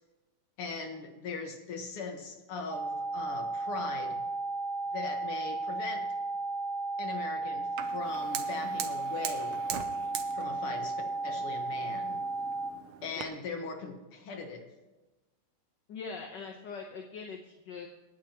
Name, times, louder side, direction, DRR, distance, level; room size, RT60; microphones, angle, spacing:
voice 1, 0.6-4.2 4.9-6.1 7.0-9.6 10.3-11.0 11.2-12.2 13.0-14.7, left 4 dB, 85° left, 3 dB, 2.5 m, -40 dB
sound 1, 2.7-12.7, right 3 dB, 35° right, 2.3 m, -34 dB
Fire, 7.8-13.2, right 9 dB, 85° right, 1.8 m, -42 dB
voice 2, 15.9-17.9, left 5 dB, 60° left, 3 dB, 1.6 m, -42 dB
27.5 x 9.8 x 3.0 m, 1.1 s
omnidirectional pair, 2.4 m